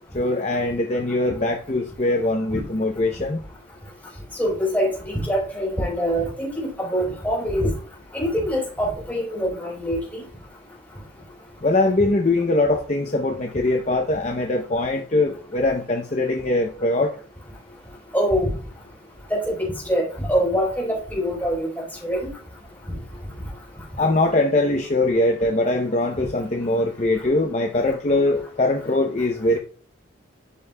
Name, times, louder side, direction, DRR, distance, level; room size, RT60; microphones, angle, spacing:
voice 1, 0.1-3.4 11.6-17.1 24.0-29.6, left 2 dB, 35° left, 0.6 m, -22 dB
voice 2, 4.4-7.7 8.1-10.2 18.1-18.5 19.3-21.7 22.0-22.3 22.9-23.0, equal, 10° left, 3.7 m, -24 dB
12.5 x 5.4 x 2.2 m
head